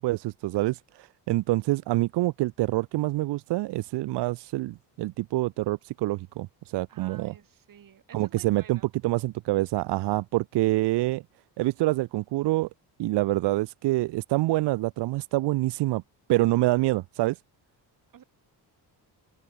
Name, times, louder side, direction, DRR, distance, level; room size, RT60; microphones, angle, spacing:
voice 1, 0.0-7.3 8.1-11.2 11.6-12.7 13.0-16.0 16.3-17.4, right 18 dB, 85° right, 0.6 m, -26 dB
voice 2, 6.9-8.9 18.1-18.2, right 9 dB, 55° right, 4.1 m, -51 dB
cardioid pair, 125°, 40 cm